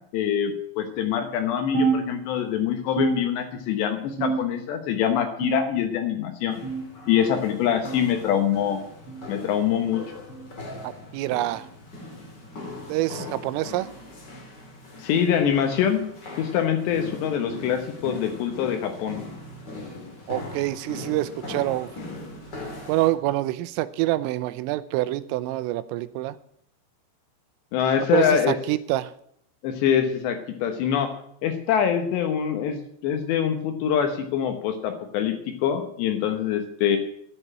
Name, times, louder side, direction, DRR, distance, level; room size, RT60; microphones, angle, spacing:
voice 1, 0.1-6.6 7.1-8.8 9.3-10.0 15.0-16.0 16.4-19.2 27.7-28.6 29.6-31.1 31.4-37.0, left 8 dB, 75° left, 7 dB, 2.8 m, -24 dB
sound 1, 1.7-2.6 3.0-3.8 4.2-4.8 5.4-6.0 6.6-7.0 7.8-8.1 9.1-9.3 10.3-10.5 11.5-11.7 12.7-12.9 13.9-14.1 15.2-15.3 16.4-16.5, right 5 dB, 35° right, 2.9 m, -29 dB
sound 2, 6.5-23.1, left 2 dB, 35° left, 1.8 m, -40 dB
voice 2, 10.8-11.7 12.9-13.9 20.3-21.9 22.9-26.4 28.1-29.1, right 16 dB, 85° right, 15 dB, 3.2 m, -26 dB
13.5 x 7.0 x 8.7 m, 0.69 s
omnidirectional pair, 5.9 m